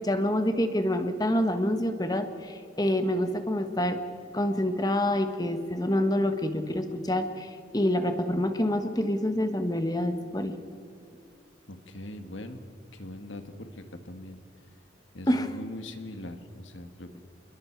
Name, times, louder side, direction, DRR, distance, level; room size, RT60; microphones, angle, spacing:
voice 1, 0.0-4.0 4.3-10.6 15.3-15.6, left 1 dB, 20° left, 8 dB, 1.3 m, -27 dB
voice 2, 11.7-12.6 13.0-13.7 14.0-14.4 15.1-17.2, left 1 dB, 80° left, 8 dB, 1.8 m, -41 dB
27.5 x 21.5 x 4.7 m, 2.4 s
head